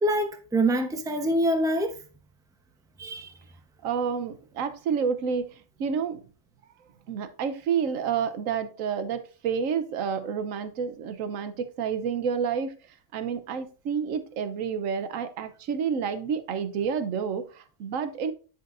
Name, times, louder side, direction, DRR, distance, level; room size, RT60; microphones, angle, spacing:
voice 1, 0.0-2.0 3.0-3.3, right 1 dB, 5° right, 0.6 m, -25 dB
voice 2, 3.8-6.2 7.1-12.8 13.1-18.3, right 6 dB, 75° right, 1.2 m, -29 dB
10.5 x 5.6 x 2.5 m
omnidirectional pair, 1.4 m